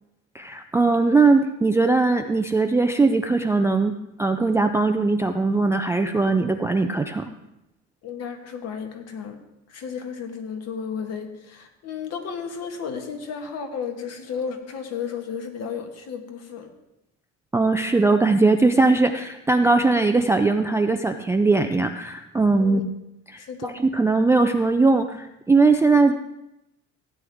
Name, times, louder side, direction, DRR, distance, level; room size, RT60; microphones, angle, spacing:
voice 1, 0.3-3.9 4.2-7.3 17.5-22.9 23.3-26.1, right 3 dB, 10° right, 7 dB, 0.3 m, -20 dB
voice 2, 8.0-9.4 9.7-16.7 22.6-22.8 23.4-23.8, left 6 dB, 50° left, 5 dB, 1.5 m, -33 dB
15.5 x 9.3 x 3.5 m, 0.88 s
cardioid pair, 140°, 33 cm